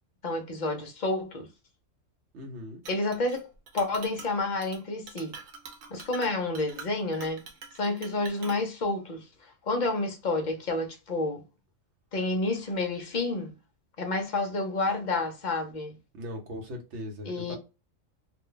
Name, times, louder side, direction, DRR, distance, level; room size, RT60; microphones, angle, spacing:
voice 1, 0.2-1.5 2.9-3.5 3.7-5.3 5.9-7.4 7.8-11.4 12.1-13.5 14.0-16.0 17.3-17.6, left 2 dB, 45° left, 0.6 m, -30 dB
voice 2, 2.3-2.8 16.1-17.6, equal, 60° right, 1.1 m, -39 dB
Chink clink, 2.8-3.4 3.7-4.3 4.6-4.8 5.1-8.6, right 5 dB, 80° right, 1.1 m, -45 dB
2.6 x 2.2 x 3.7 m
omnidirectional pair, 1.4 m